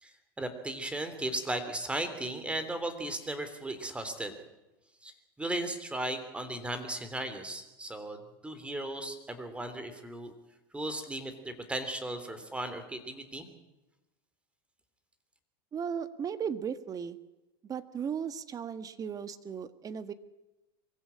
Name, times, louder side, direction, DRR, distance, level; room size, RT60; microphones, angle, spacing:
voice 1, 0.0-4.3 5.0-5.1 5.4-8.2 8.4-10.3 10.7-13.5, right 1 dB, 10° right, 9 dB, 3.4 m, -36 dB
voice 2, 15.7-17.2 17.6-20.1, right 7 dB, 30° right, 12 dB, 1.5 m, -36 dB
23.0 x 16.0 x 8.7 m, 1.0 s
hypercardioid pair, 105°, 12 cm